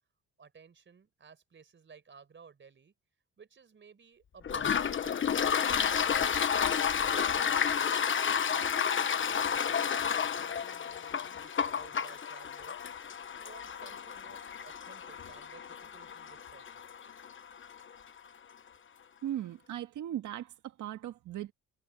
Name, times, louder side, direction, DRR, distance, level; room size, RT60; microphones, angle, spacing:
voice 1, 0.4-2.9 3.4-6.2 6.9-8.0 8.4-12.9 13.3-16.8, right 6 dB, 40° right, 4.8 m, -55 dB
Toilet flush, 4.4-17.8, left 7 dB, 40° left, 1.2 m, -31 dB
voice 2, 19.2-21.5, right 12 dB, 80° right, 1.8 m, -38 dB
cardioid pair, 90°, 30 cm